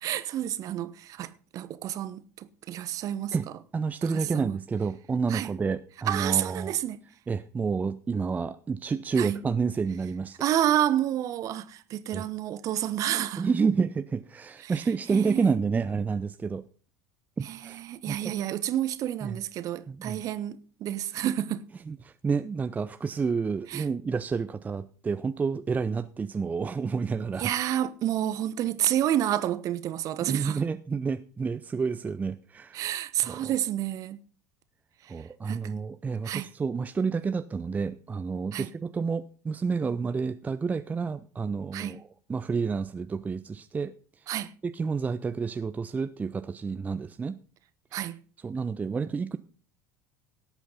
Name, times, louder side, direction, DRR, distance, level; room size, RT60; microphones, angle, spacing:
voice 1, 0.0-3.3 4.3-4.6 5.3-5.5 6.1-7.0 9.2-9.4 10.4-13.5 14.6-14.7 15.1-15.5 17.4-21.7 23.7-23.8 27.4-30.6 32.7-34.2 35.0-35.1 35.5-35.7 36.2-36.5 38.5-38.7 41.7-42.0 44.3-44.5 47.9-48.2, right 12 dB, 40° right, 1.0 m, -29 dB
voice 2, 3.7-6.7 7.3-10.4 12.1-12.3 13.4-16.6 17.4-18.4 19.2-19.4 19.9-20.2 21.9-27.5 30.2-32.8 33.2-33.5 35.1-44.3 44.6-47.4 48.4-49.4, right 5 dB, 20° right, 0.6 m, -29 dB
17.5 x 8.3 x 4.0 m
figure-of-eight pair, 70°, 9 cm